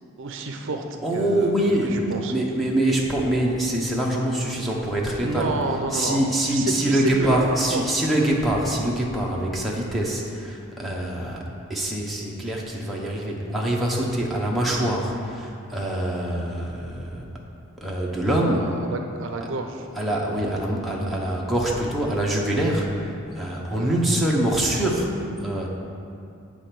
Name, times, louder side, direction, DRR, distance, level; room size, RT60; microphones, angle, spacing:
voice 1, 0.2-0.8 1.1-2.3 5.2-6.2 6.5-8.0 18.3-19.9 23.7-24.0, right 3 dB, 60° right, 4 dB, 0.5 m, -30 dB
voice 2, 1.0-5.5 5.9-11.4 11.7-17.2 17.8-18.6 20.0-25.1 25.4-25.7, right 1 dB, ahead, -3 dB, 0.9 m, -24 dB
8.3 x 5.1 x 5.9 m, 2.5 s
head